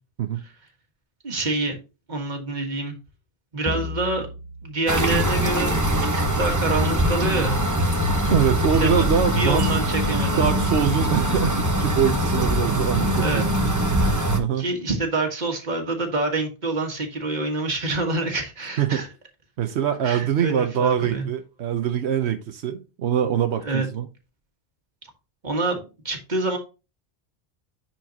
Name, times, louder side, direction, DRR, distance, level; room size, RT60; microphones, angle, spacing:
voice 1, 1.2-1.8 2.1-3.0 3.5-4.3 4.6-7.6 8.8-10.4 13.2-13.4 14.6-19.1 20.0-21.2 23.6-23.9 25.4-26.6, right 2 dB, 45° right, 1.7 m, -27 dB
sound 1, 3.7-6.3, left 4 dB, 35° left, 0.8 m, -37 dB
sound 2, 4.9-14.4, equal, 20° right, 0.8 m, -22 dB
voice 2, 8.3-9.7 10.4-13.5 14.4-14.7 18.8-19.0 19.6-24.1, right 8 dB, 85° right, 1.0 m, -23 dB
10.5 x 4.5 x 2.8 m
omnidirectional pair, 1.1 m